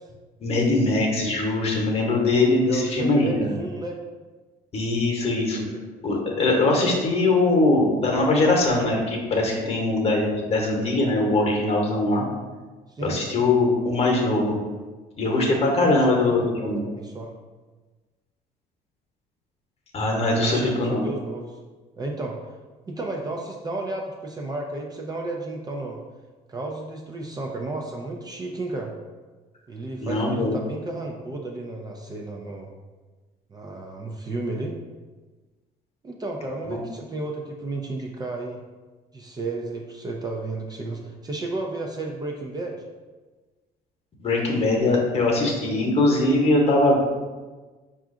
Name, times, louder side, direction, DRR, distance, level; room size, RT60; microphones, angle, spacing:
voice 1, 0.4-3.5 4.7-5.6 6.0-12.2 13.0-14.6 15.2-16.8 19.9-21.0 30.0-30.6 36.7-36.8 44.2-47.0, left 2 dB, 35° left, 0 dB, 1.0 m, -21 dB
voice 2, 2.5-4.0 5.7-5.8 6.4-6.5 12.9-13.2 15.8-17.3 20.2-21.6 22.0-22.5 22.9-26.0 26.5-28.9 29.7-32.7 33.5-34.8 36.0-38.6 39.1-42.8, right 2 dB, 25° right, 0 dB, 0.5 m, -32 dB
4.5 x 2.5 x 3.7 m, 1.3 s
cardioid pair, 110°, 17 cm